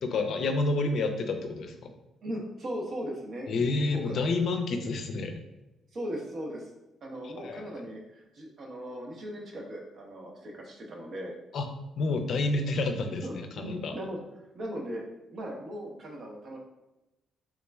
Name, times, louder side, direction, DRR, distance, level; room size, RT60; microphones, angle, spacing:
voice 1, 0.0-1.9 3.5-5.4 7.2-7.8 11.5-11.7 12.0-14.0, left 3 dB, 65° left, 6 dB, 0.4 m, -29 dB
voice 2, 2.2-3.5 3.9-4.2 5.9-6.7 7.0-11.3 13.2-14.2 14.5-15.0 15.3-16.6, equal, 55° right, 0 dB, 0.7 m, -38 dB
3.6 x 3.0 x 2.2 m, 0.99 s
cardioid pair, 90°, 0 cm